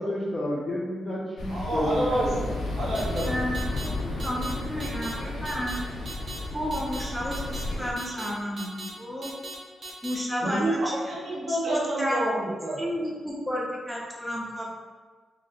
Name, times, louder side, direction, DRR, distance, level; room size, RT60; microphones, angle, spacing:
voice 1, 0.0-2.4, left 1 dB, 30° left, -6 dB, 0.7 m, -30 dB
sound 1, 1.4-7.9, left 2 dB, 90° left, 0.5 m, -33 dB
voice 2, 1.5-3.3 10.4-11.0 11.2-12.9, right 1 dB, 80° right, -7 dB, 1.1 m, -28 dB
sound 2, 2.9-3.3 3.5-3.9 4.2-4.5 4.8-5.1 5.4-5.8 6.1-6.4 6.7-7.0 7.3-7.6 8.0-8.3 8.6-8.9 9.2-9.5 9.8-10.1, right 2 dB, 50° right, 0.8 m, -39 dB
voice 3, 3.2-5.8 6.5-9.3 10.0-10.8 11.3-12.2 12.8-14.7, equal, 5° right, -4 dB, 0.8 m, -32 dB
2.9 x 2.6 x 4.0 m, 1.4 s
cardioid pair, 80°, 0 cm